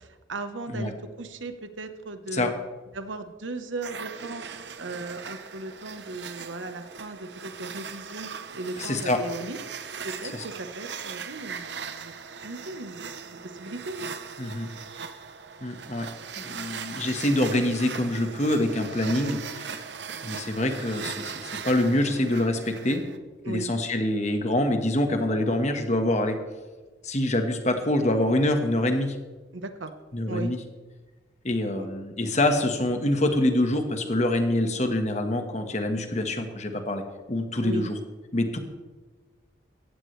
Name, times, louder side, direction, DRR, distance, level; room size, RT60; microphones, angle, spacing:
voice 1, 0.0-2.5 2.9-4.4 4.8-9.6 10.0-12.1 12.4-14.0 23.4-23.7 29.5-29.9 30.3-30.5 31.8-31.9 37.6-37.9, right 2 dB, 85° right, 8 dB, 1.2 m, -37 dB
sound 1, 3.8-23.2, right 6 dB, 65° right, 0.9 m, -39 dB
voice 2, 8.8-9.2 10.3-10.4 14.4-14.7 15.6-19.8 20.2-23.0 23.5-26.4 27.0-29.1 30.1-30.6 31.4-37.0 37.3-38.0 38.3-38.6, left 1 dB, 35° left, 5 dB, 1.5 m, -25 dB
17.5 x 15.0 x 3.3 m, 1.3 s
head